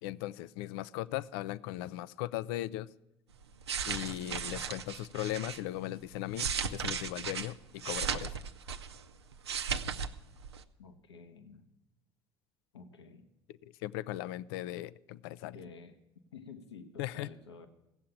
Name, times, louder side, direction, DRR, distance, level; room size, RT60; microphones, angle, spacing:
voice 1, 0.0-2.9 3.9-8.3 13.6-15.6 17.0-17.3, left 15 dB, 60° left, 19 dB, 0.5 m, -38 dB
sound 1, 3.4-5.6 6.1-9.0 9.3-10.1 10.4-10.6, right 6 dB, 80° right, 0.6 m, -36 dB
voice 2, 10.8-11.7 12.7-13.3 15.5-16.0 16.3-17.7, left 5 dB, 80° left, 8 dB, 1.1 m, -51 dB
16.0 x 7.6 x 8.7 m, 0.95 s
figure-of-eight pair, 60°, 14 cm